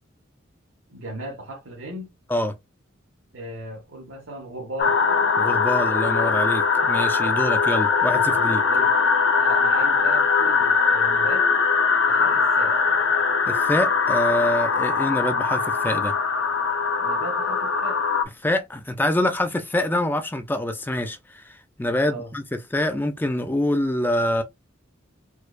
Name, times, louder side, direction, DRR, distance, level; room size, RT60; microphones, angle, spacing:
voice 1, 0.9-2.1 3.3-5.0 8.7-8.9 9.4-11.5 12.0-12.8 17.0-18.0 22.0-22.3, right 1 dB, 85° right, 1.0 m, -37 dB
sound 1, 4.8-18.2, left 5 dB, 70° left, 0.7 m, -21 dB
voice 2, 5.4-8.6 13.5-16.1 18.4-22.4 22.7-24.4, left 1 dB, 10° left, 0.3 m, -25 dB
4.4 x 2.3 x 2.4 m
head